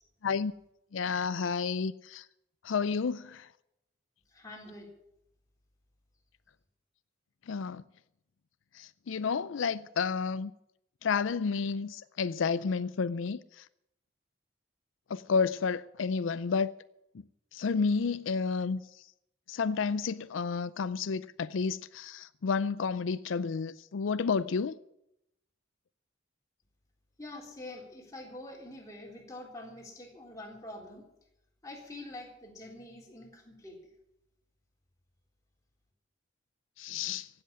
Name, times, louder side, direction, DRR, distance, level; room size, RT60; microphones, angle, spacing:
voice 1, 0.9-2.2 2.6-3.5 7.5-7.8 8.8-10.5 11.0-13.4 15.1-16.7 17.5-18.8 19.5-24.7 36.8-37.3, left 5 dB, 85° left, 0.5 m, -31 dB
voice 2, 4.3-4.9 27.2-31.0 31.6-33.8, left 1 dB, 15° left, 3.7 m, -45 dB
16.0 x 8.0 x 9.7 m
head